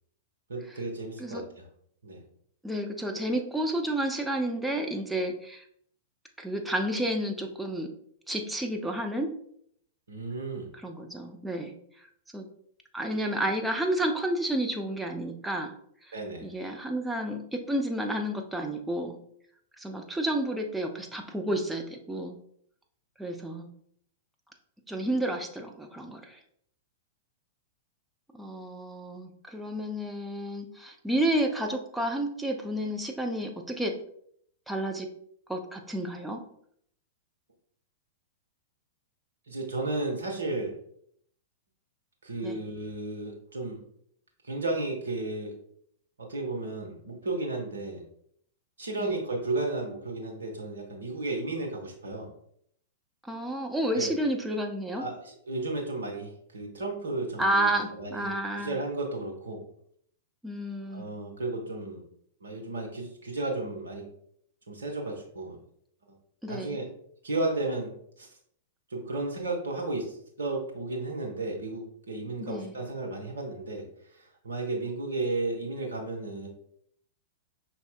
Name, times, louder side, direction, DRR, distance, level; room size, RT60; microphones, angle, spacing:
voice 1, 0.5-1.6 2.0-2.2 10.1-10.7 16.1-16.4 39.5-40.7 42.2-43.8 44.4-45.5 46.2-48.0 48.8-52.3 53.9-54.1 55.0-59.6 60.9-62.0 62.4-64.1 64.7-65.6 66.5-66.9 67.2-68.3 68.9-73.8 74.1-76.5, right 2 dB, 70° right, 0 dB, 1.0 m, -33 dB
voice 2, 2.6-5.6 6.4-7.9 8.3-9.3 10.7-12.1 12.3-12.4 12.9-15.7 16.0-16.1 16.4-19.2 19.8-22.3 23.2-23.7 24.9-26.4 28.3-34.0 34.7-35.1 35.5-36.4 42.4-42.6 49.0-49.1 53.2-55.1 57.4-58.8 60.4-61.1 66.4-66.8 72.4-72.7, right 1 dB, 5° right, 3 dB, 0.5 m, -31 dB
5.3 x 2.9 x 2.2 m, 0.67 s
figure-of-eight pair, 100°, 0 cm